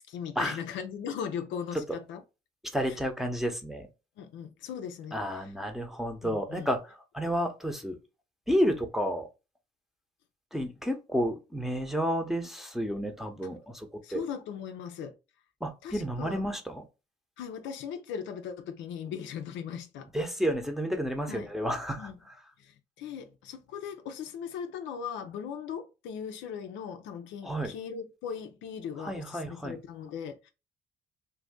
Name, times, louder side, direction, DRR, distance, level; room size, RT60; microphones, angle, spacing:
voice 1, 0.1-2.2 2.9-3.0 4.2-5.2 6.2-6.7 13.4-13.5 14.0-15.1 15.8-16.4 17.4-20.1 21.3-21.5 22.0-22.1 22.6-30.5, left 7 dB, 75° left, 0.5 m, -38 dB
voice 2, 2.7-3.9 5.1-8.0 8.5-9.3 10.5-14.2 15.6-16.8 20.1-22.4 27.4-27.7 29.0-29.8, equal, ahead, 0.8 m, -31 dB
2.7 x 2.5 x 3.6 m
supercardioid pair, 60°, 19 cm